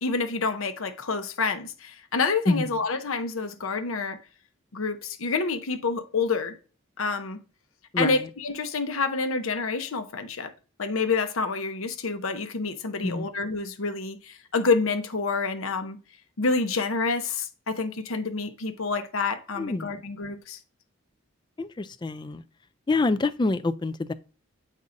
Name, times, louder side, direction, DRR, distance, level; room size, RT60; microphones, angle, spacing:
voice 1, 0.0-4.2 4.7-6.6 7.0-7.4 8.0-10.5 10.8-16.0 16.4-20.6, left 4 dB, 80° left, 0.8 m, -28 dB
voice 2, 7.9-8.3 13.0-13.3 19.6-20.0 21.6-22.4 22.9-24.1, left 3 dB, 20° left, 0.3 m, -26 dB
8.3 x 5.3 x 2.6 m
head